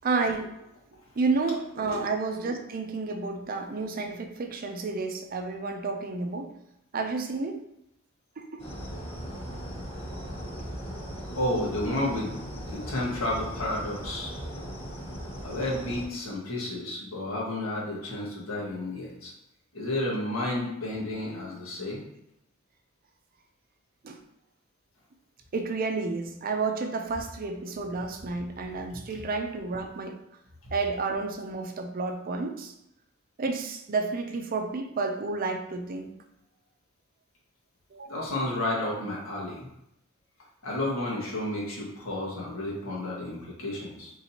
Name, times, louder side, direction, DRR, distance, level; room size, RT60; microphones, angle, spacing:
voice 1, 0.0-0.5 1.2-6.5 6.9-7.6 8.4-8.6 24.0-24.2 25.5-30.2 30.7-32.7 33.4-36.1 37.9-38.1, right 3 dB, 45° right, 5 dB, 0.5 m, -30 dB
sound 1, 8.6-16.1, equal, 30° left, 1.3 m, -38 dB
voice 2, 11.3-12.3 12.7-14.3 15.4-19.3 19.7-22.0 38.1-39.7 40.6-44.1, left 1 dB, 85° left, -4 dB, 1.6 m, -31 dB
4.3 x 3.8 x 2.8 m, 0.83 s
head